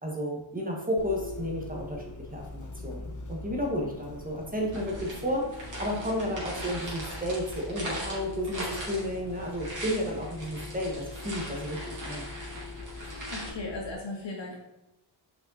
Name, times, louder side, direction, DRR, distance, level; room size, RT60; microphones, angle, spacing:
voice 1, 0.0-12.3, equal, 15° right, -1 dB, 1.6 m, -32 dB
Bus, 1.0-13.9, left 3 dB, 40° left, 0.9 m, -42 dB
sound 1, 4.7-13.5, right 1 dB, 40° right, 2.6 m, -40 dB
voice 2, 12.9-14.6, left 2 dB, 65° left, -1 dB, 2.2 m, -38 dB
5.8 x 5.5 x 4.2 m, 0.92 s
wide cardioid pair, 105°, 48 cm